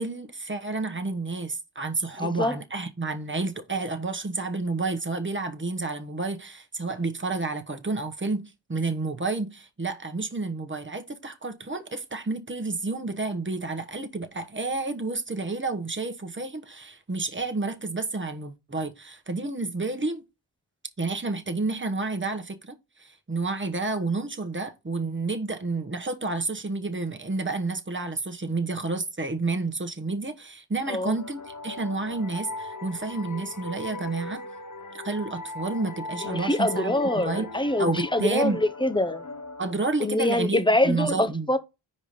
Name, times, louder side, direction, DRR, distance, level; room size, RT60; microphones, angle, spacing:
voice 1, 0.0-20.2 21.0-34.4 34.9-37.5 37.8-38.6 39.6-41.5, right 3 dB, 25° right, 1.2 m, -30 dB
voice 2, 2.2-2.6 30.9-31.2 36.2-39.2 40.0-41.6, left 1 dB, 10° left, 0.8 m, -25 dB
sound 1, 31.1-40.6, left 3 dB, 40° left, 1.0 m, -39 dB
4.9 x 4.3 x 5.3 m
cardioid pair, 50°, 48 cm